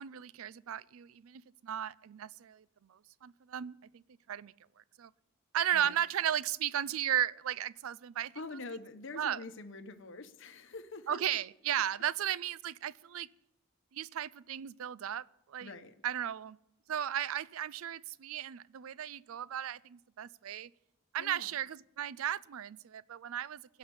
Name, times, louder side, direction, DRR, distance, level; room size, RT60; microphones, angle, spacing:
voice 1, 0.0-4.0 4.3-4.5 5.0-5.1 5.5-8.3 9.1-9.4 11.1-13.3 13.9-15.7 16.0-16.6 16.9-20.7 21.1-23.8, right 10 dB, 75° right, 21 dB, 0.4 m, -35 dB
voice 2, 8.3-11.2 15.6-15.9 21.2-21.5, left 3 dB, 60° left, 10 dB, 0.9 m, -45 dB
16.0 x 6.0 x 9.5 m, 0.86 s
head